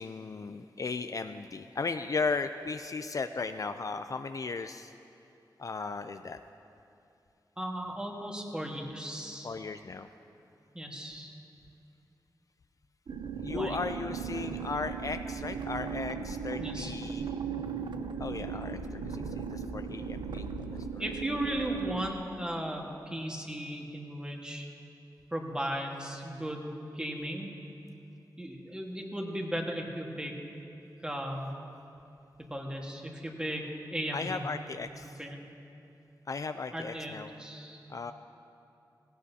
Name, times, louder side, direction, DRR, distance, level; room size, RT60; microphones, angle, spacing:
voice 1, 0.0-4.9 5.6-6.4 9.4-10.1 13.4-17.2 18.2-20.5 20.7-21.0 34.1-35.2 36.3-37.3 37.9-38.1, left 4 dB, 50° left, 8 dB, 0.4 m, -36 dB
voice 2, 7.6-9.5 10.7-11.4 13.5-13.8 16.6-16.9 21.0-24.7 25.3-27.5 28.4-30.4 31.0-31.5 32.5-34.4 35.0-35.4 36.7-37.8, equal, 10° right, 0 dB, 1.5 m, -36 dB
sound 1, 13.1-22.1, right 6 dB, 80° right, 0.6 m, -37 dB
17.0 x 16.5 x 2.8 m, 2.7 s
wide cardioid pair, 100°, 8 cm